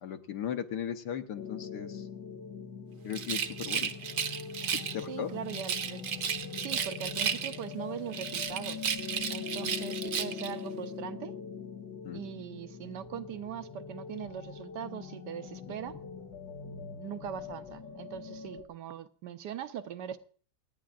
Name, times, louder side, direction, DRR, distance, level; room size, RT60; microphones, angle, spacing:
voice 1, 0.0-2.0 3.0-3.9 4.7-5.3 12.0-12.2, left 9 dB, 70° left, 6 dB, 1.5 m, -37 dB
sound 1, 1.4-18.6, left 6 dB, 85° left, 1.8 m, -42 dB
Rattle, 3.1-5.0 5.5-7.7 8.1-10.6, right 7 dB, 55° right, 1.1 m, -33 dB
voice 2, 5.1-6.1 6.6-8.9 9.3-11.3 12.1-15.9 16.7-20.2, right 9 dB, 75° right, 11 dB, 1.4 m, -41 dB
27.5 x 9.5 x 2.5 m, 0.43 s
omnidirectional pair, 1.9 m